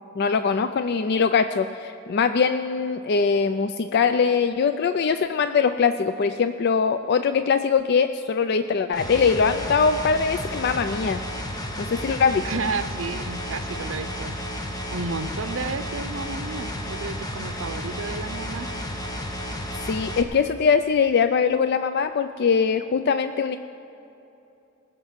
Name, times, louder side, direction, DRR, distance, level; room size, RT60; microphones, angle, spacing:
voice 1, 0.2-11.2 11.8-12.5 19.9-23.6, left 5 dB, 55° left, 10 dB, 0.4 m, -22 dB
sound 1, 8.9-20.2, equal, 20° left, 1.1 m, -32 dB
voice 2, 12.4-14.4 14.9-18.7, right 4 dB, 80° right, 11 dB, 0.7 m, -32 dB
19.5 x 6.7 x 7.4 m, 2.9 s
head